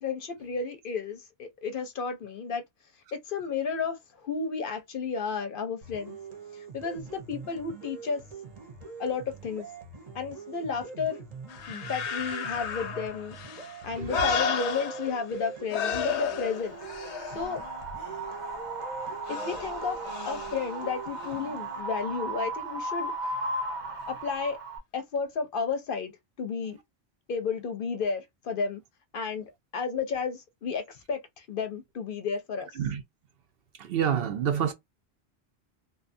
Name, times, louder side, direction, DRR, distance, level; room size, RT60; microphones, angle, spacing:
voice 1, 0.0-2.6 3.1-6.2 6.5-8.2 9.0-9.7 10.1-11.3 11.7-13.4 13.8-16.8 17.3-17.6 19.3-23.1 24.1-24.6 24.9-26.8 27.3-28.8 29.1-32.7, left 5 dB, 60° left, 0.7 m, -32 dB
sound 1, 5.8-21.8, right 5 dB, 40° right, 0.8 m, -44 dB
sound 2, 11.5-15.4 15.7-18.2 19.3-20.7 21.2-21.3, left 6 dB, 90° left, 0.9 m, -33 dB
Wind, 16.7-24.8, right 2 dB, 85° right, 1.1 m, -36 dB
voice 2, 33.8-34.7, right 8 dB, 65° right, 0.8 m, -27 dB
2.6 x 2.3 x 2.5 m
omnidirectional pair, 1.1 m